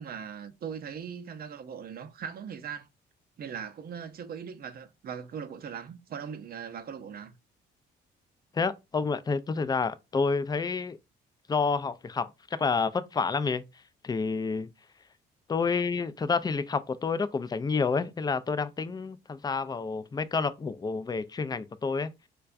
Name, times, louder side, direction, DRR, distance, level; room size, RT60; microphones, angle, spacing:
voice 1, 0.0-2.9 3.4-7.4, right 7 dB, 50° right, 0.5 m, -40 dB
voice 2, 8.5-11.0 11.5-13.6 14.0-14.7 15.5-22.1, left 4 dB, 20° left, 0.4 m, -29 dB
4.4 x 2.2 x 2.4 m
cardioid pair, 90°, 20 cm